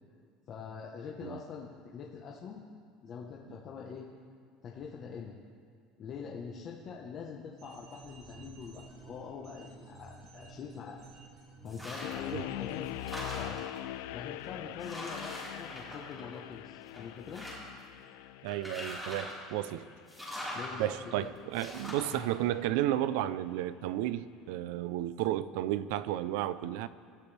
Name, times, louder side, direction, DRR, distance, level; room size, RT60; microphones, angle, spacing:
voice 1, 0.5-2.6 3.0-4.1 4.6-5.3 6.0-11.0 11.6-12.9 13.2-13.7 14.1-17.5 18.8-19.2 20.5-21.3 22.1-22.3, left 6 dB, 30° left, -2 dB, 1.3 m, -44 dB
sound 1, 7.6-13.2, right 3 dB, 50° right, 5.0 m, -53 dB
sound 2, 11.7-12.3 12.7-13.8 14.4-14.5 14.8-16.5 16.9-17.8 18.5-19.4 20.1-20.7 21.5-22.2, left 1 dB, 5° right, 4.4 m, -42 dB
sound 3, 12.0-23.1, left 16 dB, 80° left, 0.4 m, -44 dB
voice 2, 18.4-19.9 20.8-26.9, right 13 dB, 70° right, 14 dB, 0.7 m, -32 dB
27.5 x 14.0 x 3.5 m, 2.1 s
cardioid pair, 175°, 0 cm